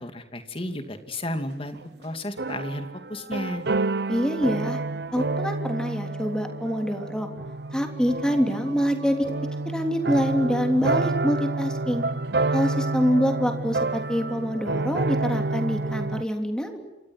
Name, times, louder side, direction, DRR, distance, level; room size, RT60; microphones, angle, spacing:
voice 1, 0.0-3.7, left 1 dB, 30° left, 7 dB, 2.6 m, -33 dB
sound 1, 1.8-1.9 2.4-16.2, right 3 dB, 65° right, 0.8 m, -29 dB
voice 2, 4.1-4.8 5.1-7.3 7.7-9.3 9.6-12.0 12.5-16.8, equal, 5° left, 4 dB, 3.2 m, -25 dB
28.0 x 26.0 x 6.2 m, 1.1 s
head